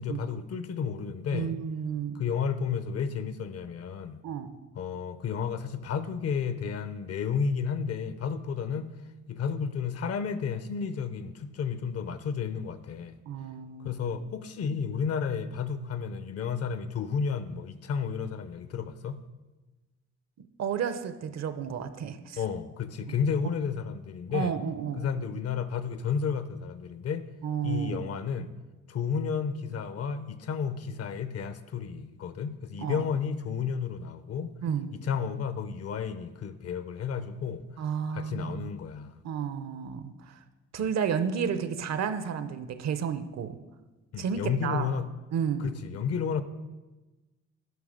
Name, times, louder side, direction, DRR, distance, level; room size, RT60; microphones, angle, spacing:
voice 1, 0.0-1.5 2.1-4.2 4.8-8.9 9.3-13.2 13.8-19.2 22.4-24.5 25.0-27.2 27.6-28.5 28.9-34.5 35.0-37.6 38.1-39.2 44.1-45.1 45.6-46.4, left 6 dB, 55° left, 0.7 m, -32 dB
voice 2, 1.3-2.2 4.2-4.5 13.3-14.0 20.6-22.4 24.3-25.0 27.4-28.2 32.8-33.0 34.6-34.9 37.8-38.7 39.2-40.4 40.7-43.6 44.2-44.9 45.3-45.7, right 7 dB, 60° right, 0.7 m, -32 dB
9.4 x 5.9 x 5.0 m
cardioid pair, 90°, 30 cm